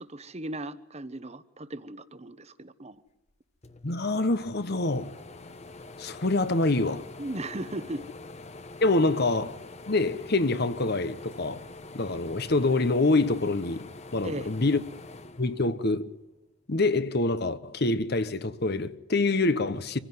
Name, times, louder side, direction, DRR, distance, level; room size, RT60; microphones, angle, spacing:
voice 1, 0.0-3.0 7.2-8.1 14.2-14.5, right 1 dB, 35° right, 1.1 m, -37 dB
sound 1, 3.3-3.4 3.6-16.2 16.7-17.8, left 2 dB, 35° left, 1.1 m, -46 dB
voice 2, 3.8-5.1 6.0-7.1 8.8-9.6 9.9-11.7 11.9-14.8 15.4-16.1 16.7-20.0, left 2 dB, 55° left, 1.2 m, -26 dB
25.5 x 16.5 x 9.5 m
head